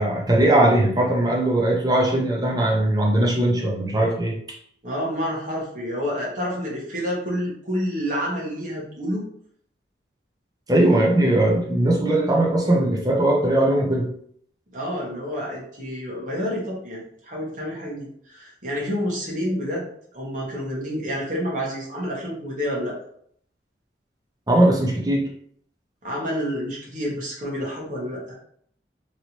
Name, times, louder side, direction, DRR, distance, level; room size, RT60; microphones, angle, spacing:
voice 1, 0.0-4.3 10.7-14.1 24.5-25.3, right 1 dB, 20° right, -2 dB, 0.7 m, -19 dB
voice 2, 4.8-9.2 14.7-19.9 20.1-23.0 26.0-28.4, equal, 45° right, -4 dB, 1.2 m, -29 dB
3.2 x 2.7 x 2.9 m, 0.65 s
head